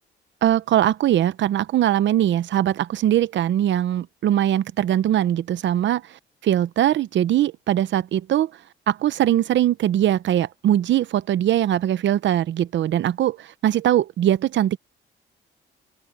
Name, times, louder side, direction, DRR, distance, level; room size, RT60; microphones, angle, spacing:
voice 1, 0.4-8.5 8.9-14.8, right 11 dB, 70° right, 0.9 m, -21 dB
open air
cardioid pair, 90°, 20 cm